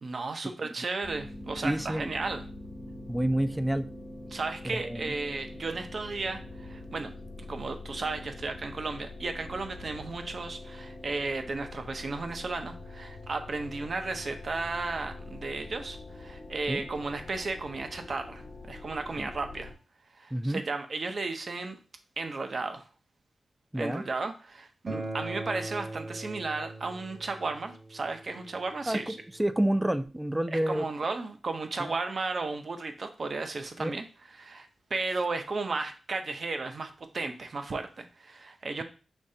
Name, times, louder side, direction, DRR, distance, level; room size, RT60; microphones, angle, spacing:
voice 1, 0.0-2.4 4.3-7.1 7.4-19.7 20.2-21.8 22.2-22.9 23.7-29.2 30.5-38.8, right 3 dB, 55° right, 7 dB, 0.6 m, -34 dB
sound 1, 1.0-19.7, left 2 dB, 70° left, 1.1 m, -44 dB
voice 2, 1.6-2.1 3.1-3.9 4.7-5.2 16.7-16.8 19.2-19.3 20.3-20.6 23.7-24.0 28.9-29.1 29.4-30.9 31.8-31.9 33.8-33.9, right 1 dB, 10° right, 11 dB, 0.3 m, -28 dB
Acoustic guitar, 24.9-30.1, right 2 dB, 35° right, 1.0 m, -41 dB
5.2 x 3.1 x 2.7 m, 0.36 s
cardioid pair, 75°, 0 cm